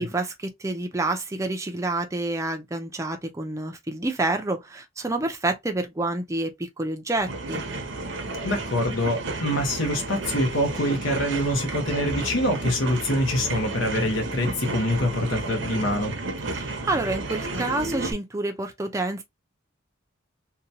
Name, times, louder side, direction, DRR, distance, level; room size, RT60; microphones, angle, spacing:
voice 1, 0.0-7.6 16.5-19.2, right 2 dB, 15° right, 0.4 m, -28 dB
sound 1, 7.1-18.1, right 2 dB, 70° right, 0.7 m, -32 dB
voice 2, 8.4-16.1, left 1 dB, 75° left, 0.8 m, -25 dB
2.8 x 2.2 x 2.6 m
head